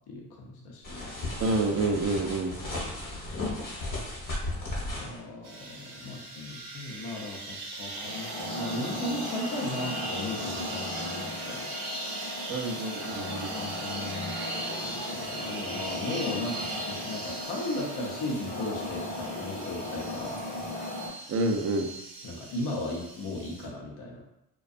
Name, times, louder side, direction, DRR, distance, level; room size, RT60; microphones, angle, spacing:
voice 1, 0.1-1.0 5.0-11.7 13.0-20.4 22.2-24.2, left 1 dB, 70° left, -1 dB, 0.7 m, -36 dB
sound 1, 0.8-5.2, left 2 dB, 50° left, 1.0 m, -35 dB
voice 2, 1.4-2.6 12.5-13.5 21.3-21.9, right 2 dB, 40° right, 3 dB, 0.4 m, -28 dB
sound 2, 5.4-23.7, right 2 dB, 90° right, 0.7 m, -40 dB
sound 3, 7.9-21.1, left 1 dB, 20° left, 0.6 m, -37 dB
2.3 x 2.2 x 2.5 m, 0.85 s
cardioid pair, 70°, 40 cm